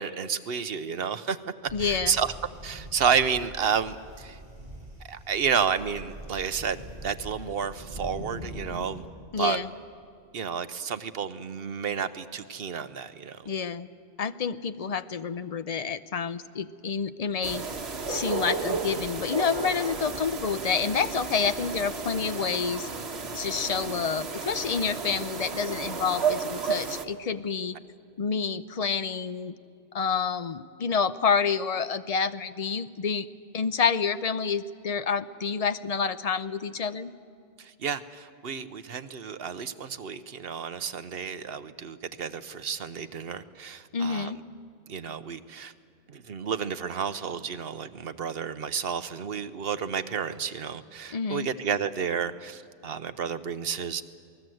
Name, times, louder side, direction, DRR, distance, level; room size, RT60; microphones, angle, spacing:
voice 1, 0.0-1.4 1.6-2.3 2.6-4.4 5.1-9.0 9.4-9.6 10.3-13.5 37.6-44.3 44.9-45.7 46.1-54.0, right 7 dB, 65° right, 12 dB, 1.0 m, -31 dB
voice 2, 1.7-2.1 9.3-9.7 13.5-13.9 14.2-17.6 18.1-22.9 23.3-27.8 28.2-29.5 29.9-33.3 33.5-37.1 43.9-44.4 51.1-51.5, left 6 dB, 40° left, 12 dB, 0.7 m, -28 dB
sound 1, 1.7-9.0, right 1 dB, 40° right, 6.4 m, -42 dB
sound 2, 17.4-27.1, right 5 dB, 80° right, 1.6 m, -33 dB
28.0 x 19.5 x 7.8 m, 2.3 s
omnidirectional pair, 1.1 m